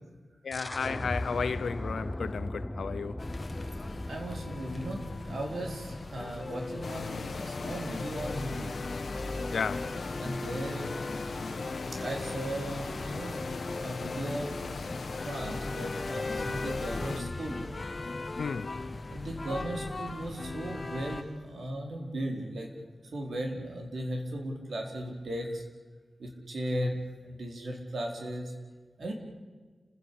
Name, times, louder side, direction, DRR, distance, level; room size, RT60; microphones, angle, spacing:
voice 1, 0.4-3.1 9.5-10.0 18.4-18.7 26.7-26.9, left 5 dB, 85° left, 0.7 m, -33 dB
sound 1, 0.5-6.0, left 1 dB, 10° left, 0.9 m, -38 dB
sound 2, 3.2-21.2, left 2 dB, 35° left, 1.6 m, -38 dB
voice 2, 3.9-8.8 10.2-10.9 11.9-13.4 13.8-14.5 15.2-17.6 19.1-25.6 26.2-28.5 29.0-29.1, right 1 dB, 75° right, 4.4 m, -37 dB
sound 3, 6.8-17.2, left 4 dB, 65° left, 1.4 m, -39 dB
29.5 x 16.0 x 8.5 m
wide cardioid pair, 100°, 0 cm